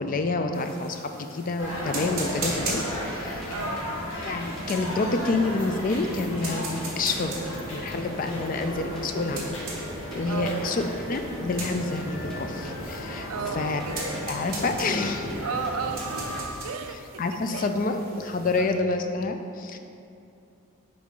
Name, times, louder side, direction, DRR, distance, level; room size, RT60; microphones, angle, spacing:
voice 1, 0.0-3.5 4.2-9.5 10.1-13.3 13.5-13.8 14.3-15.3 17.2-19.8, left 3 dB, 40° left, 6 dB, 0.3 m, -28 dB
sound 1, 0.5-18.6, right 3 dB, 40° right, 1.4 m, -41 dB
sound 2, 1.6-16.4, equal, 65° left, 1.3 m, -34 dB
sound 3, 2.7-5.8 6.1-9.3 9.8-13.1 13.4-16.8, equal, ahead, 0.7 m, -47 dB
voice 2, 3.5-3.9 10.2-10.7 13.3-14.0 15.4-17.2 17.5-17.7 18.6-18.8, right 6 dB, 75° right, 8 dB, 0.4 m, -34 dB
7.2 x 4.6 x 3.8 m, 2.6 s
head